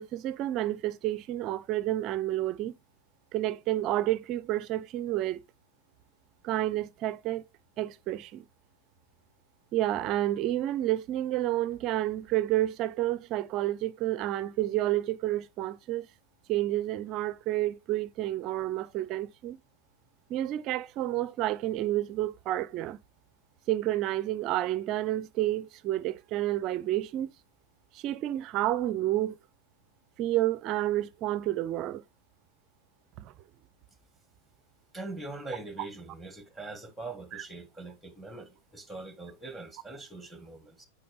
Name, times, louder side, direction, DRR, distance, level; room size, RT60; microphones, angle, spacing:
voice 1, 0.0-2.7 3.3-5.4 6.4-7.4 7.8-8.5 9.7-16.1 16.5-19.6 20.3-23.0 23.7-27.3 27.9-29.4 30.2-32.0 33.2-33.3 37.3-37.4, right 14 dB, 35° right, 0.5 m, -30 dB
voice 2, 34.9-40.9, right 2 dB, ahead, 1.3 m, -42 dB
8.5 x 4.2 x 3.1 m
figure-of-eight pair, 90°, 0 cm